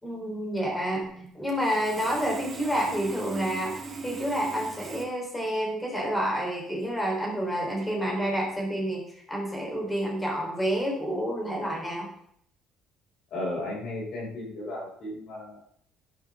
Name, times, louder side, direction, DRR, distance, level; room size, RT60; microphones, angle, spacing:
voice 1, 0.0-12.1, equal, 10° left, -1 dB, 4.2 m, -29 dB
Sawing, 1.5-5.0, right 4 dB, 30° right, 2.5 m, -39 dB
voice 2, 13.3-15.6, left 1 dB, 50° left, -4 dB, 6.3 m, -34 dB
12.5 x 12.5 x 3.8 m, 0.66 s
cardioid pair, 180°, 0 cm